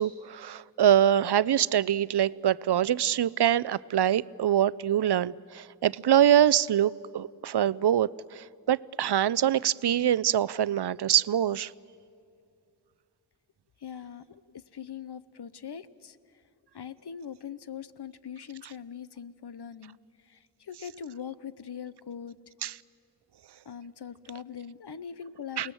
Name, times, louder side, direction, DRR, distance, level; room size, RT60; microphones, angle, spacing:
voice 1, 0.0-11.7 22.6-22.7 25.6-25.7, right 10 dB, 70° right, 21 dB, 0.5 m, -24 dB
voice 2, 13.8-16.2 16.7-20.0 20.2-22.4 23.7-25.7, left 8 dB, 70° left, 15 dB, 0.8 m, -41 dB
28.0 x 19.5 x 7.7 m, 2.4 s
wide cardioid pair, 50°, 42 cm